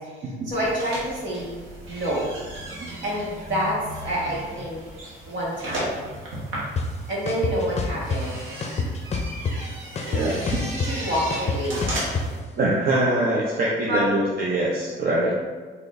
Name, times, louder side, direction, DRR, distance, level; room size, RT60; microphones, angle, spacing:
voice 1, 0.5-1.6 1.9-2.2 3.0-4.8 5.3-6.0 7.1-8.4 10.8-11.9 13.9-14.1 15.2-15.3, equal, 70° right, -5 dB, 1.4 m, -27 dB
sound 1, 0.5-12.4, right 1 dB, 85° right, 1.1 m, -36 dB
sound 2, 6.8-6.9 7.3-8.2 8.6-9.7 10.0-12.2, left 4 dB, 35° left, 0.5 m, -26 dB
voice 2, 10.1-10.6 12.6-15.3, right 1 dB, 50° right, -4 dB, 0.7 m, -23 dB
3.9 x 2.9 x 3.2 m, 1.5 s
cardioid pair, 90°, 20 cm